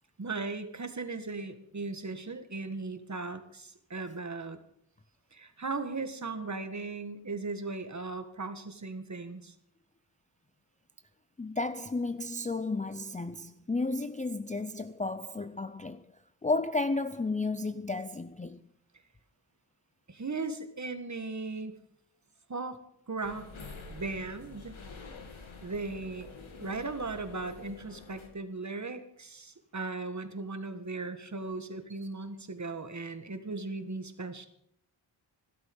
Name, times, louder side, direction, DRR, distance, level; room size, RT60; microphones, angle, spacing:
voice 1, 0.2-4.6 5.3-9.5 20.1-21.8 22.5-22.8 23.1-23.5 23.9-24.7 25.6-26.3 26.6-34.5, right 3 dB, 35° right, 1.6 m, -37 dB
voice 2, 11.4-16.1 16.4-18.6, left 3 dB, 15° left, 0.5 m, -33 dB
sound 1, 23.2-28.3, left 3 dB, 75° left, 2.5 m, -47 dB
16.5 x 12.0 x 5.3 m
wide cardioid pair, 120°, 48 cm